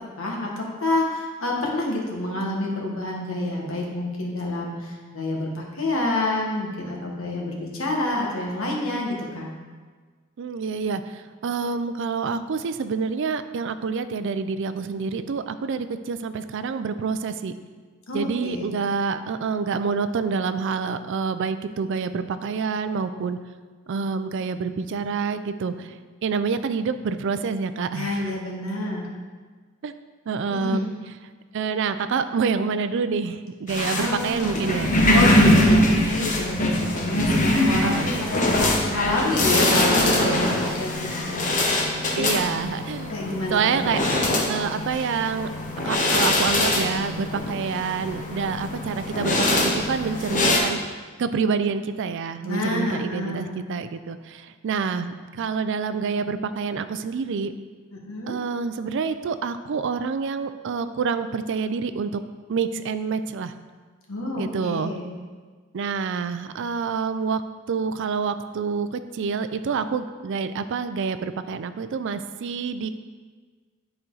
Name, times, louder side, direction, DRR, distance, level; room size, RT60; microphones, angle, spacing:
voice 1, 0.2-9.5 18.1-18.8 27.9-29.1 30.5-30.9 33.9-34.6 35.1-41.5 42.1-42.2 43.1-43.8 52.4-53.5 57.9-58.4 64.1-65.1, left 2 dB, 70° left, -1 dB, 1.5 m, -28 dB
voice 2, 10.4-17.5 18.1-23.4 23.9-28.3 29.8-29.9 30.3-30.9 31.5-35.0 37.8-38.4 42.2-43.1 43.5-44.0 44.5-45.5 45.8-50.8 51.2-57.5 58.3-62.2 62.5-63.5 64.3-64.9 65.7-67.4 67.7-72.9, right 5 dB, 60° right, 11 dB, 0.4 m, -27 dB
sound 1, 33.7-50.6, left 1 dB, 40° left, 1.0 m, -23 dB
10.0 x 4.4 x 3.9 m, 1.5 s
head